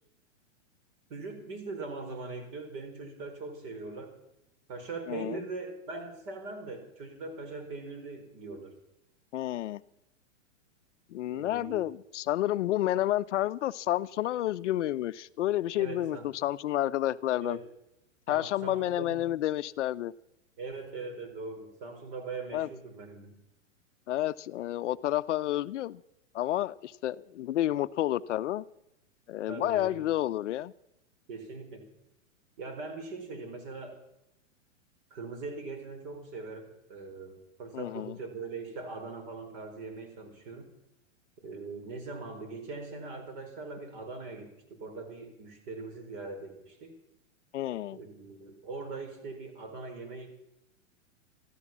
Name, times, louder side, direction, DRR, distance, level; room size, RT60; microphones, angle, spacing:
voice 1, 1.1-4.1 4.7-8.8 11.3-11.9 15.8-16.3 17.4-17.6 18.3-19.3 20.6-23.4 29.5-30.0 31.3-31.9 32.6-34.0 35.1-40.7 41.4-46.9 47.9-50.3, right 3 dB, 45° right, 5 dB, 4.7 m, -41 dB
voice 2, 5.1-5.4 9.3-9.8 11.1-17.6 18.3-20.1 22.5-22.7 24.1-26.0 26.3-28.6 29.3-30.7 37.7-38.2 47.5-48.0, left 13 dB, 65° left, 16 dB, 0.6 m, -30 dB
14.0 x 12.5 x 7.2 m, 0.85 s
hypercardioid pair, 145°, 38 cm